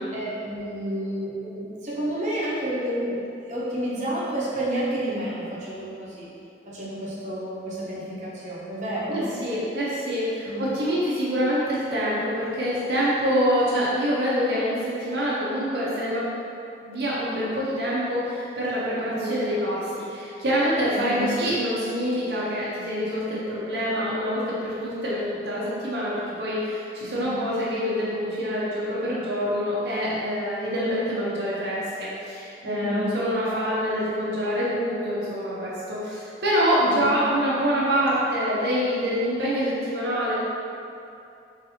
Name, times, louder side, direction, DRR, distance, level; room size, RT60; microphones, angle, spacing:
voice 1, 0.1-6.3 6.7-9.3 10.4-10.7 19.1-19.4 20.9-21.2 27.1-27.4 32.6-33.2 36.8-37.1, right 1 dB, 45° right, -8 dB, 0.8 m, -30 dB
voice 2, 9.1-16.2 16.8-40.3, equal, 70° right, -8 dB, 0.7 m, -26 dB
4.1 x 3.3 x 2.7 m, 2.6 s
head